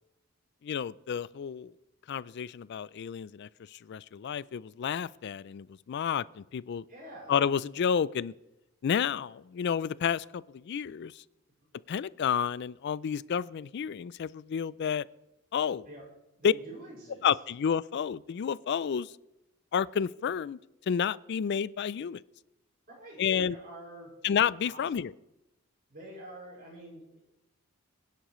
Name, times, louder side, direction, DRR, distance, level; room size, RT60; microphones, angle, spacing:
voice 1, 0.6-1.7 2.1-6.8 7.3-8.3 8.8-11.2 11.9-15.1 15.5-15.9 16.4-16.5 17.2-19.1 19.7-20.6 20.9-22.2 23.2-23.6 24.2-25.1, left 7 dB, 50° left, 20 dB, 0.3 m, -30 dB
voice 2, 6.9-7.3 15.8-16.1 16.4-17.3 22.9-24.1 24.7-24.8 25.9-27.2, right 1 dB, 45° right, -3 dB, 5.8 m, -47 dB
21.5 x 10.5 x 3.1 m, 0.92 s
head